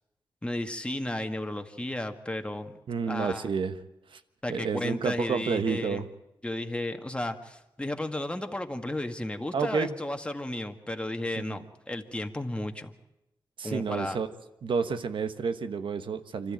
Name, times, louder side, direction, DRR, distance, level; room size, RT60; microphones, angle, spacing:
voice 1, 0.4-2.8 3.0-3.5 4.4-6.0 6.4-12.9 13.6-14.2, left 1 dB, 10° left, 5 dB, 1.8 m, -33 dB
voice 2, 2.9-3.7 4.1-4.2 4.5-6.1 9.5-10.0 11.4-11.6 13.6-14.3 14.6-16.5, right 5 dB, 75° right, 10 dB, 1.2 m, -30 dB
26.0 x 13.5 x 8.9 m, 0.91 s
cardioid pair, 65°, 9 cm